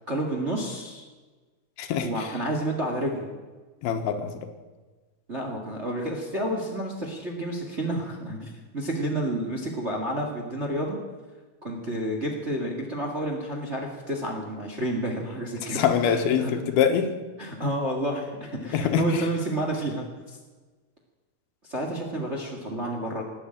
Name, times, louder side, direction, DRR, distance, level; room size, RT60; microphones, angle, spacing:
voice 1, 0.1-1.0 2.0-3.3 5.3-11.0 11.6-16.5 17.4-20.4 21.6-23.2, right 1 dB, 25° right, 1 dB, 1.5 m, -30 dB
voice 2, 1.8-2.3 3.8-4.5 15.7-17.1 18.7-19.2, left 7 dB, 85° left, 7 dB, 3.2 m, -24 dB
18.5 x 8.8 x 8.9 m, 1.3 s
omnidirectional pair, 4.3 m